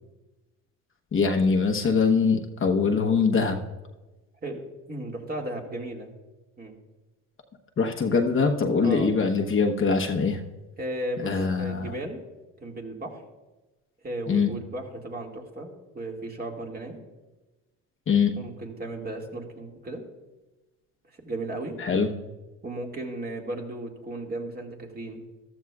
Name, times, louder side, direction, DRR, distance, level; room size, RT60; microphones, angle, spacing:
voice 1, 1.1-3.6 7.8-10.4 11.2-11.9 14.3-14.5 18.1-18.4 21.8-22.1, left 5 dB, 40° left, 2 dB, 1.1 m, -23 dB
voice 2, 4.9-6.1 6.6-6.8 8.8-9.1 10.8-12.2 12.6-13.2 14.0-17.0 18.4-20.0 21.1-21.8 22.6-25.2, right 1 dB, 30° right, 0 dB, 2.1 m, -35 dB
14.5 x 12.5 x 2.4 m, 1.1 s
supercardioid pair, 85°, 32 cm